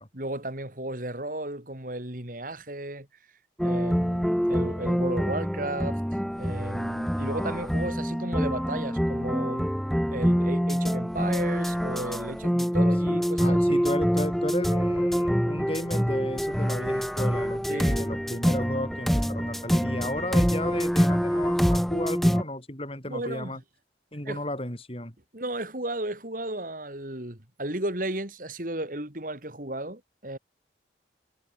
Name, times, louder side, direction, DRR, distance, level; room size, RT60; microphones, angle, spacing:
voice 1, 0.1-3.1 3.6-6.0 6.4-9.7 10.1-13.8 17.7-18.0 23.0-23.5 24.3-24.4 25.3-30.4, right 1 dB, 50° right, 3.7 m, -34 dB
sound 1, 3.6-22.4, equal, ahead, 3.0 m, -25 dB
voice 2, 13.1-23.6 24.1-25.1, left 1 dB, 30° left, 7.7 m, -34 dB
head